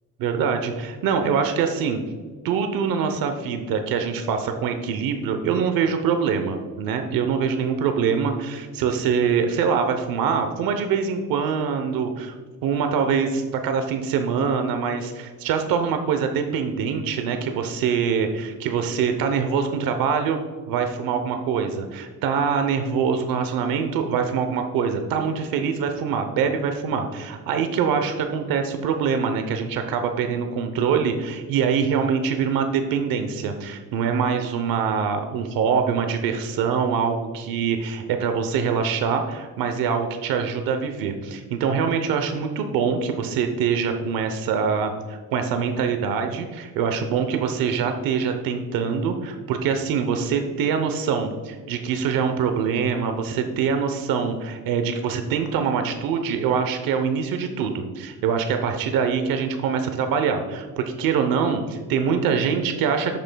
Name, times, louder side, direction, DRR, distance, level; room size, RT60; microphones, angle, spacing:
voice 1, 0.2-2.0 2.4-12.3 12.6-20.4 20.7-63.2, right 6 dB, 90° right, 6 dB, 0.9 m, -24 dB
11.5 x 8.7 x 2.3 m, 1.5 s
cardioid pair, 145°, 34 cm